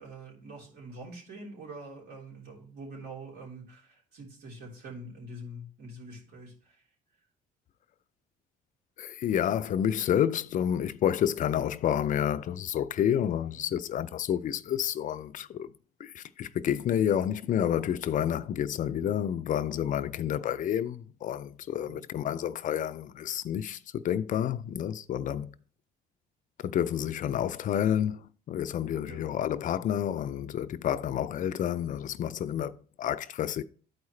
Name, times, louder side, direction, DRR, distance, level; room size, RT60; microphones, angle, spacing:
voice 1, 0.0-6.8 13.5-13.7 21.8-22.1 29.0-29.3, right 1 dB, 75° right, 3.6 m, -45 dB
voice 2, 9.0-15.7 16.0-25.5 26.6-33.6, left 10 dB, 50° left, 0.5 m, -29 dB
12.0 x 4.8 x 3.2 m
cardioid pair, 110°, 17 cm